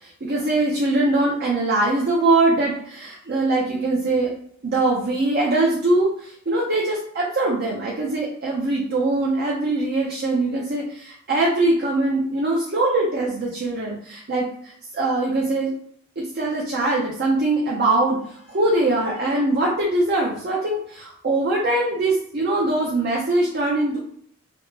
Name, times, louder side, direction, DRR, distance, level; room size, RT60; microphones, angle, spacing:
voice 1, 0.0-4.3 4.6-15.7 16.3-18.2 18.5-24.0, right 2 dB, 45° right, -3 dB, 0.5 m, -22 dB
3.4 x 2.0 x 2.7 m, 0.64 s
head